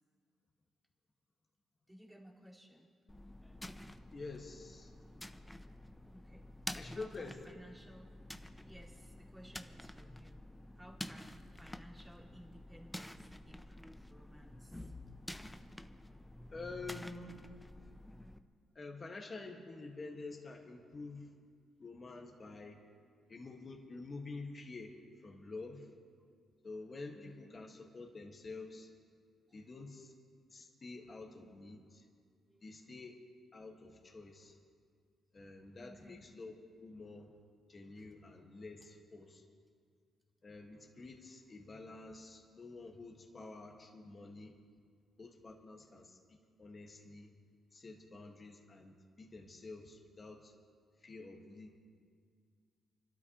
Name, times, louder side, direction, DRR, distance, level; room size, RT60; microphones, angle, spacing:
voice 1, 1.9-2.9 6.1-6.4 7.0-8.1 8.6-10.5 10.7-14.9 27.1-27.6 29.5-29.6 32.5-32.7 35.8-36.2 37.9-38.0, equal, 10° right, -2 dB, 2.5 m, -57 dB
sound 1, 3.1-18.4, left 1 dB, 10° left, 0.7 m, -49 dB
voice 2, 4.1-5.0 6.7-7.4 16.5-17.5 18.8-21.3 21.8-22.9 23.3-25.9 26.6-28.9 29.5-30.1 30.5-32.1 32.6-33.2 33.5-34.6 35.3-36.6 36.8-37.4 37.7-39.4 40.4-44.6 45.2-47.3 47.7-50.5 51.0-51.8, left 3 dB, 35° left, 1 dB, 1.7 m, -49 dB
29.5 x 12.5 x 3.1 m, 2.1 s
cardioid pair, 90°, 0 cm